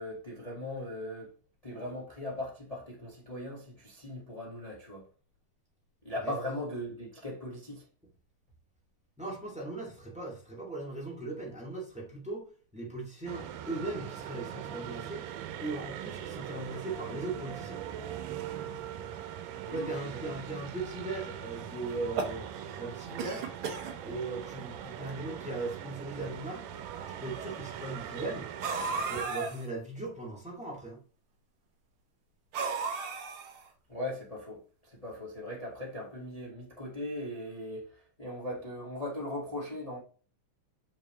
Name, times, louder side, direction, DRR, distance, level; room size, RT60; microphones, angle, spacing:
voice 1, 0.0-1.3 1.6-5.0 6.0-7.8 19.6-20.3 33.9-40.0, left 1 dB, 55° left, 0.4 m, -39 dB
voice 2, 9.2-12.4 12.7-15.2 15.6-17.8 19.7-22.5 22.7-23.5 24.0-26.6 27.1-28.5 29.0-31.0, right 2 dB, 5° right, 1.1 m, -38 dB
sound 1, 13.3-29.3, right 10 dB, 85° right, 2.5 m, -41 dB
sound 2, 21.9-22.8 23.2-23.9 24.8-24.9 25.1-25.2 26.1-26.2 28.6-29.6 32.5-33.7, right 4 dB, 70° right, 1.3 m, -34 dB
6.6 x 5.9 x 3.1 m
omnidirectional pair, 4.0 m